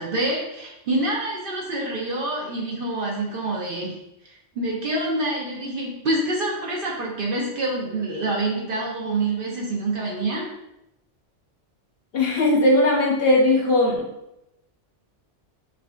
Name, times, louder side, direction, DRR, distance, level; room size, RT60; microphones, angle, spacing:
voice 1, 0.0-4.0 4.2-10.5, right 2 dB, 55° right, -3 dB, 0.7 m, -26 dB
voice 2, 12.1-14.1, left 1 dB, 65° left, -1 dB, 0.7 m, -18 dB
4.8 x 2.3 x 2.2 m, 0.88 s
omnidirectional pair, 1.3 m